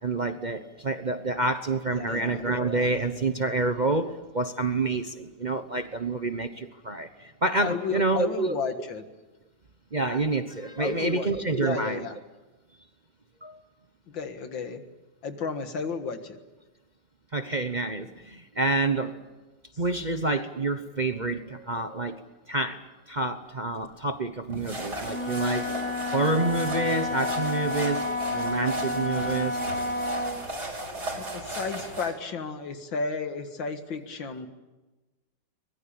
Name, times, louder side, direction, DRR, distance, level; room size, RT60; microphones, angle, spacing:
voice 1, 0.0-8.6 9.9-12.0 13.4-13.6 17.3-19.2 19.8-22.2 22.5-22.8 23.1-25.7 26.1-29.6, right 2 dB, 35° right, 8 dB, 0.8 m, -28 dB
voice 2, 1.9-2.6 7.6-9.0 10.8-12.2 14.1-14.8 15.2-16.4 31.2-34.5, left 5 dB, 90° left, 8 dB, 2.5 m, -33 dB
sound 1, 24.5-32.1, right 1 dB, 60° right, 6.0 m, -36 dB
Wind instrument woodwind instrument, 25.0-30.4, left 2 dB, 5° left, 4.7 m, -30 dB
23.5 x 21.0 x 8.7 m, 1.1 s
omnidirectional pair, 2.0 m